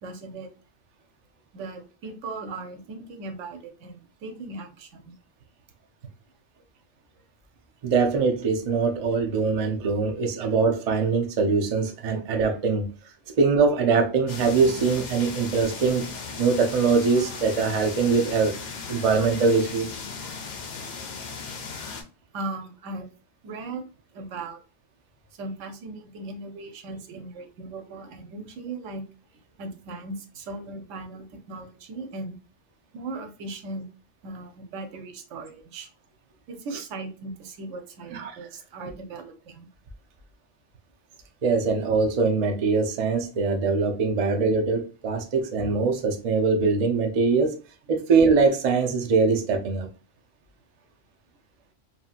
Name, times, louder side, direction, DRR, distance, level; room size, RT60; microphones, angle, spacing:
voice 1, 0.0-0.5 1.5-5.1 6.6-6.7 22.3-23.1 23.4-23.8 24.1-24.6 25.3-29.0 29.6-32.4 32.9-33.9 34.2-35.9 36.5-39.7, right 2 dB, 90° right, 6 dB, 1.0 m, -38 dB
voice 2, 7.8-12.9 13.4-16.1 16.4-18.6 18.9-19.9 38.1-38.3 41.4-47.6 47.9-49.9, right 4 dB, 50° right, 3 dB, 0.4 m, -22 dB
sound 1, 14.3-22.0, left 4 dB, 55° left, 0.5 m, -37 dB
2.7 x 2.6 x 2.4 m, 0.36 s
omnidirectional pair, 1.2 m